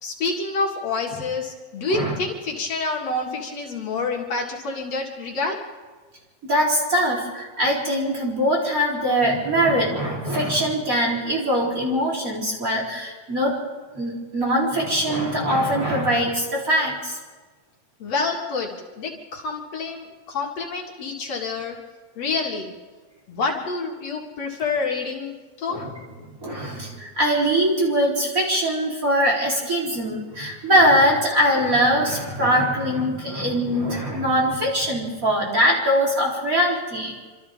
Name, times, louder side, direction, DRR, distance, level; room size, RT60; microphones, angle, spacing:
voice 1, 0.0-5.6 18.0-21.8 22.2-22.7 23.3-25.8, left 3 dB, 65° left, 0 dB, 3.1 m, -28 dB
voice 2, 6.4-13.5 13.9-17.2 25.7-25.9 26.2-37.1, equal, 30° right, -3 dB, 4.2 m, -22 dB
27.5 x 26.0 x 3.7 m, 1.4 s
omnidirectional pair, 3.3 m